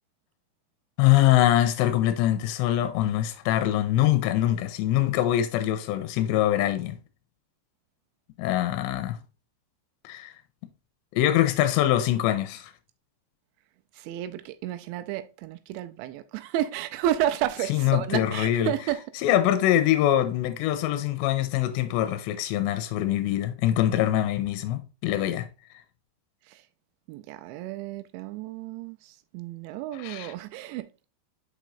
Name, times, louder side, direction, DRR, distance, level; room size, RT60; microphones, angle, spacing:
voice 1, 1.0-7.0 8.4-9.2 10.0-10.3 11.1-12.7 17.7-18.7 19.2-25.5 30.0-30.3, left 13 dB, 85° left, 2.9 m, -23 dB
voice 2, 14.0-19.0 26.5-26.6 27.1-31.1, right 12 dB, 90° right, 2.9 m, -31 dB
6.6 x 6.1 x 2.6 m
omnidirectional pair, 5.1 m